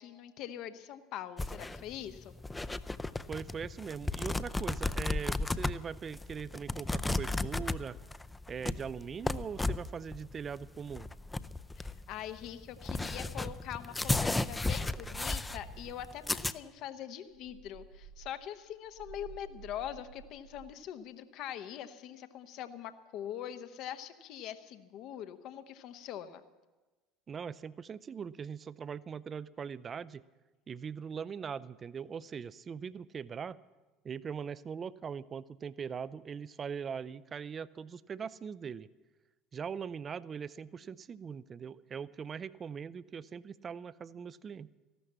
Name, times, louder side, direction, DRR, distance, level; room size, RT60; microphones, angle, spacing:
voice 1, 0.0-2.3 11.8-26.4, left 10 dB, 50° left, 11 dB, 1.0 m, -43 dB
sound 1, 1.4-16.5, left 2 dB, 10° left, 0.5 m, -35 dB
voice 2, 3.3-8.0 8.5-11.1 27.3-30.2 30.7-33.6 34.0-38.9 39.5-44.7, right 6 dB, 30° right, 19 dB, 0.5 m, -41 dB
sound 2, 17.3-20.8, right 7 dB, 70° right, 1.5 m, -52 dB
14.5 x 12.5 x 7.4 m, 1.2 s
figure-of-eight pair, 65°, 0 cm